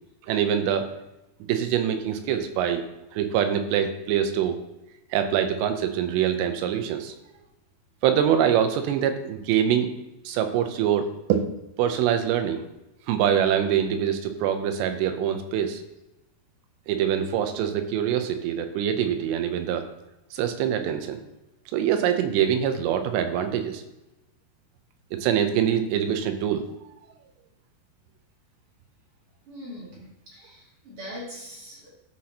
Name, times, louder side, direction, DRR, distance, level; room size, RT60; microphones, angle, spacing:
voice 1, 0.3-0.9 1.4-2.8 3.1-4.6 5.1-7.1 8.0-9.9 10.3-11.4 11.8-12.6 13.1-15.8 16.9-19.8 20.3-21.2 21.7-23.8 25.1-26.7, right 9 dB, 85° right, 7 dB, 2.9 m, -24 dB
voice 2, 29.5-31.9, equal, 40° right, -6 dB, 2.7 m, -41 dB
14.0 x 5.9 x 2.8 m, 0.95 s
omnidirectional pair, 4.9 m